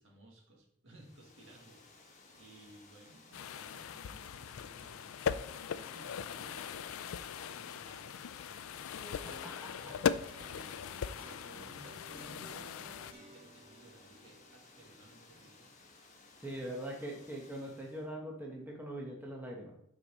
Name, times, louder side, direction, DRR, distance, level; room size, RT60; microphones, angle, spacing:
voice 1, 0.0-2.1 2.3-5.2 5.7-8.8 9.7-15.7 16.5-16.7, right 2 dB, 70° right, -1 dB, 2.0 m, -57 dB
Water, 0.9-18.1, left 3 dB, 35° left, 1.4 m, -59 dB
sound 1, 3.3-13.1, left 7 dB, 90° left, 0.4 m, -39 dB
sound 2, 9.0-15.4, equal, 30° right, 2.4 m, -57 dB
voice 2, 9.2-9.8 16.4-19.7, right 1 dB, 10° right, -2 dB, 1.1 m, -42 dB
8.9 x 4.8 x 4.1 m, 0.71 s
head